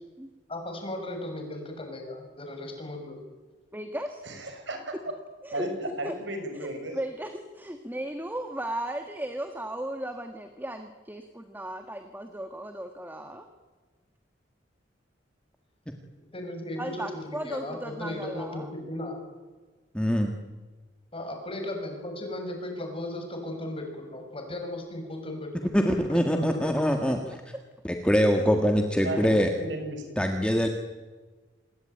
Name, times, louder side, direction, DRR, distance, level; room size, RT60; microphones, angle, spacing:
voice 1, 0.5-3.2 16.3-19.3 21.1-25.5 25.8-26.7, left 1 dB, 30° left, 4 dB, 6.4 m, -36 dB
voice 2, 3.7-4.2 5.4-6.1 6.6-13.5 16.8-18.7 26.9-27.2 27.5-27.6 28.4-28.5, right 1 dB, 10° right, 7 dB, 1.5 m, -36 dB
voice 3, 4.2-4.8 5.5-5.7 6.0-6.9 28.9-30.0, right 2 dB, 70° right, 6 dB, 6.1 m, -34 dB
voice 4, 19.9-20.3 25.7-27.4 27.8-29.5 30.2-30.7, equal, 5° left, 4 dB, 1.7 m, -23 dB
27.5 x 20.5 x 9.1 m, 1.3 s
head